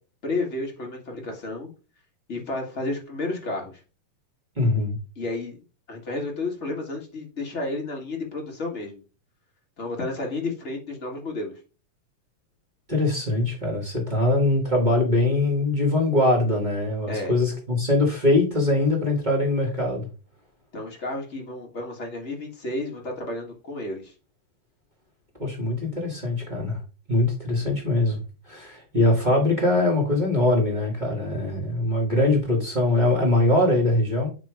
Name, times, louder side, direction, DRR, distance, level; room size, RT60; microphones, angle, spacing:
voice 1, 0.2-1.7 2.3-3.8 5.2-5.6 5.9-9.0 9.8-11.5 17.1-17.3 20.7-24.1, left 2 dB, 35° left, 1 dB, 1.2 m, -31 dB
voice 2, 4.5-5.0 12.9-20.1 25.4-26.8 27.1-28.2 28.5-34.3, left 2 dB, 20° right, -1 dB, 1.2 m, -22 dB
8.9 x 3.1 x 4.9 m, 0.34 s
omnidirectional pair, 3.9 m